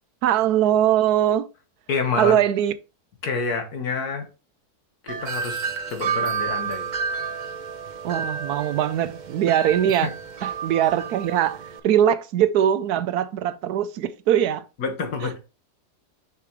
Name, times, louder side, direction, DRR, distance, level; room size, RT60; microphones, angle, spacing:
voice 1, 0.2-1.5 2.2-2.7 8.0-10.1 10.4-14.7 15.2-15.3, right 10 dB, 80° right, 1.1 m, -21 dB
voice 2, 1.9-2.4 3.2-4.3 5.0-6.9 14.8-15.4, left 4 dB, 70° left, 1.9 m, -28 dB
Wind chime, 5.1-11.8, right 6 dB, 50° right, 0.5 m, -30 dB
6.8 x 5.8 x 3.0 m
omnidirectional pair, 1.7 m